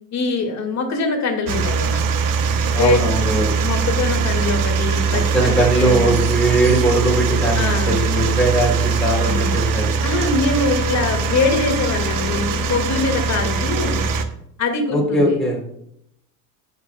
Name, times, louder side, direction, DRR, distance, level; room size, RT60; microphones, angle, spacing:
voice 1, 0.1-2.0 2.8-3.0 3.6-6.2 7.5-8.0 9.2-9.6 10.0-14.0 14.6-15.4, left 3 dB, 40° left, 4 dB, 2.4 m, -23 dB
sound 1, 1.5-14.3, right 5 dB, 50° right, 1.1 m, -21 dB
voice 2, 2.7-3.5 5.1-9.9 14.9-15.6, right 1 dB, ahead, -3 dB, 3.6 m, -20 dB
12.5 x 6.6 x 2.4 m, 0.72 s
supercardioid pair, 100°, 42 cm